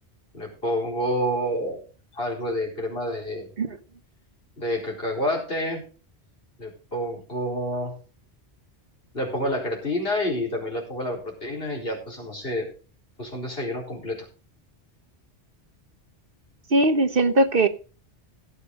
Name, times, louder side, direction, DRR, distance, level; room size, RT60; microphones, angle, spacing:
voice 1, 0.3-1.8 2.2-3.5 4.6-5.8 6.6-7.9 9.1-12.7 13.2-14.2, equal, 60° left, -1 dB, 4.6 m, -28 dB
voice 2, 16.7-17.7, right 2 dB, 55° right, 8 dB, 1.3 m, -20 dB
17.0 x 8.2 x 3.8 m, 0.36 s
omnidirectional pair, 1.1 m